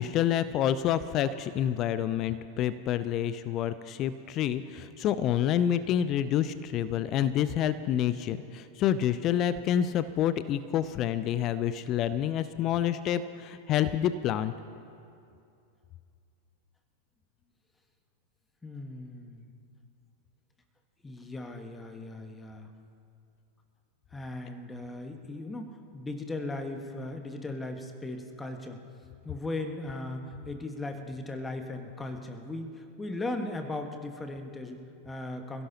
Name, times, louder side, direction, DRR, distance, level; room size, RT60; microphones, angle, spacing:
voice 1, 0.0-14.5, left 10 dB, 35° left, 14 dB, 0.5 m, -28 dB
voice 2, 18.6-19.5 21.0-22.7 24.1-28.8 29.2-35.7, left 2 dB, 10° left, 6 dB, 1.4 m, -38 dB
28.0 x 16.0 x 2.9 m, 2.5 s
figure-of-eight pair, 90°, 0 cm